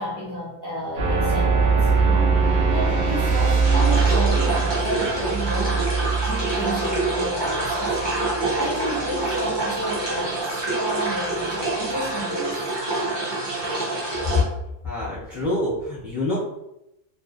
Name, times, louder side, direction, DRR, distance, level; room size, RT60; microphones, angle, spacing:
voice 1, 0.0-2.4 2.7-5.9 6.2-8.2 8.5-12.6, right 1 dB, 25° left, -9 dB, 0.4 m, -31 dB
sound 1, 1.0-9.5, right 4 dB, 55° right, 0.8 m, -22 dB
sound 2, 3.6-14.4, right 2 dB, 30° right, 0.5 m, -26 dB
voice 2, 14.8-16.4, left 2 dB, ahead, -9 dB, 1.1 m, -26 dB
2.6 x 2.5 x 2.5 m, 0.87 s
omnidirectional pair, 1.4 m